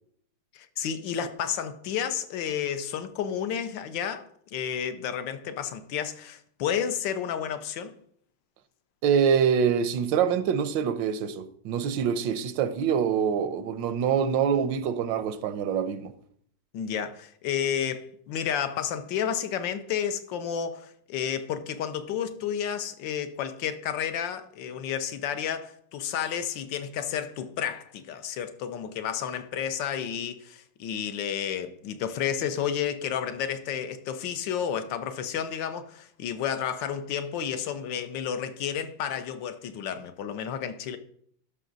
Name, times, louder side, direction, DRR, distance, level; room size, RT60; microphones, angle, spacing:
voice 1, 0.5-7.9 16.7-41.0, left 8 dB, 85° left, 1.5 m, -31 dB
voice 2, 9.0-16.1, right 7 dB, 90° right, 1.4 m, -25 dB
12.5 x 5.7 x 3.9 m
omnidirectional pair, 2.0 m